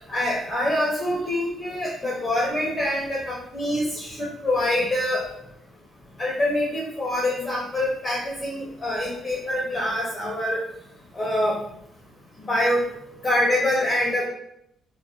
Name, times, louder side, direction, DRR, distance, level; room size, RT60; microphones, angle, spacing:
voice 1, 0.1-5.2 6.2-10.6 11.1-11.6 12.4-12.8 13.2-14.3, left 1 dB, 25° left, -4 dB, 0.6 m, -25 dB
2.3 x 2.0 x 2.7 m, 0.75 s
cardioid pair, 90°, 0 cm